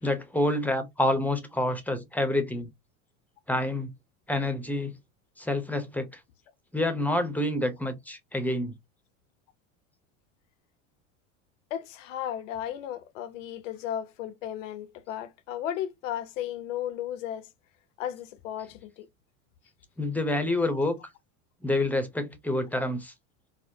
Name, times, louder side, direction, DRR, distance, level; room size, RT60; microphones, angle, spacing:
voice 1, 0.0-2.7 3.5-3.9 4.3-4.9 5.4-6.1 6.7-8.7 20.0-20.9 21.6-23.1, left 1 dB, 5° left, 0.7 m, -27 dB
voice 2, 11.7-17.5 18.0-19.1, left 10 dB, 80° left, 0.8 m, -35 dB
4.2 x 2.1 x 2.7 m
supercardioid pair, 105°, 37 cm